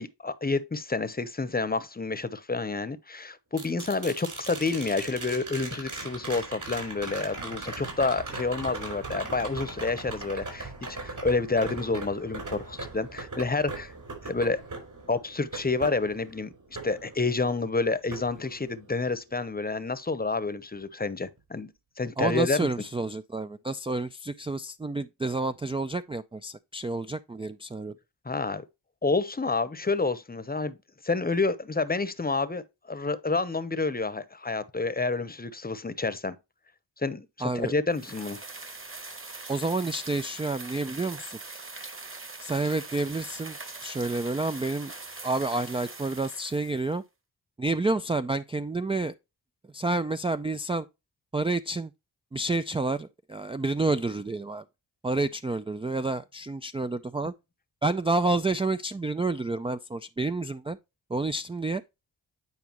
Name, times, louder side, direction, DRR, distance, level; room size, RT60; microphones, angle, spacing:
voice 1, 0.0-10.7 11.0-13.9 14.2-14.6 15.1-16.5 16.8-21.7 22.0-22.7 28.2-28.6 29.0-30.8 31.0-36.4 37.0-38.4, left 3 dB, 20° left, 0.9 m, -29 dB
sound 1, 3.6-17.7 18.1-19.1 21.4-21.5, right 3 dB, 45° right, 4.6 m, -39 dB
voice 2, 22.2-27.9 37.4-37.7 39.5-41.4 42.4-43.6 43.8-44.9 45.2-47.0 47.6-49.2 49.7-50.9 51.3-51.9 52.3-54.6 55.0-57.3 57.8-60.8 61.1-61.8, right 2 dB, 15° right, 0.4 m, -29 dB
sound 2, 37.9-46.9, right 3 dB, 30° right, 1.6 m, -42 dB
9.5 x 4.9 x 3.0 m
cardioid pair, 70°, 41 cm